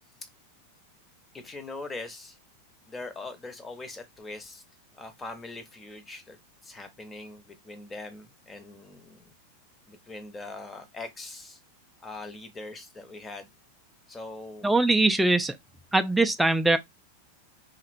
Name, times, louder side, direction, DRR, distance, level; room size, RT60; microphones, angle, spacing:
voice 1, 1.3-2.4 2.9-4.6 4.9-6.4 6.6-9.3 9.9-11.6 12.0-13.5 14.1-14.7, left 2 dB, 15° left, 0.7 m, -41 dB
voice 2, 14.6-15.6 15.9-16.8, right 2 dB, 5° right, 0.3 m, -22 dB
2.7 x 2.1 x 2.5 m
hypercardioid pair, 95°, 0 cm